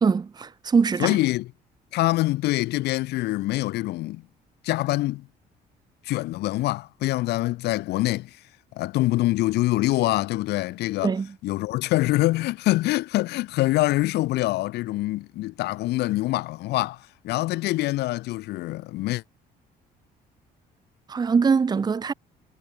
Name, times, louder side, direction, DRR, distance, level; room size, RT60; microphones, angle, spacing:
voice 1, 0.0-1.2 11.0-11.3 21.1-22.1, right 5 dB, 25° right, 0.8 m, -22 dB
voice 2, 1.0-1.5 1.9-4.2 4.6-5.3 6.0-8.4 8.8-11.1 11.4-19.2, left 18 dB, 75° left, 0.8 m, -25 dB
cardioid pair, 110°, 17 cm